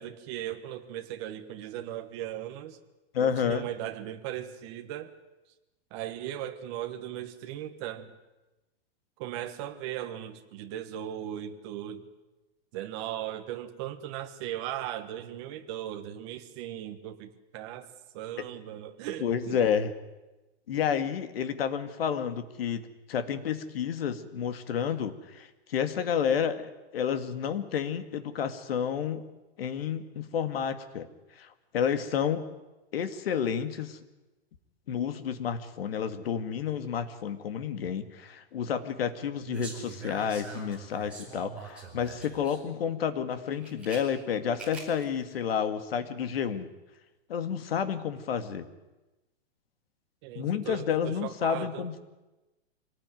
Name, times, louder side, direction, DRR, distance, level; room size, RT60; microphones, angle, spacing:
voice 1, 0.0-2.8 3.2-5.1 5.9-8.2 9.2-12.1 12.7-17.9 18.1-19.6 50.2-51.9, right 12 dB, 25° right, 6 dB, 1.5 m, -38 dB
voice 2, 3.1-3.7 19.2-19.9 20.7-29.2 29.6-31.1 31.4-32.5 32.9-34.0 34.9-46.7 47.3-48.7 50.3-52.0, left 7 dB, 65° left, 10 dB, 2.3 m, -30 dB
sound 1, 39.4-42.6 43.3-44.0 44.5-45.0 45.3-45.4, right 4 dB, 5° right, 4.9 m, -44 dB
25.0 x 19.0 x 9.3 m, 1.1 s
supercardioid pair, 180°, 32 cm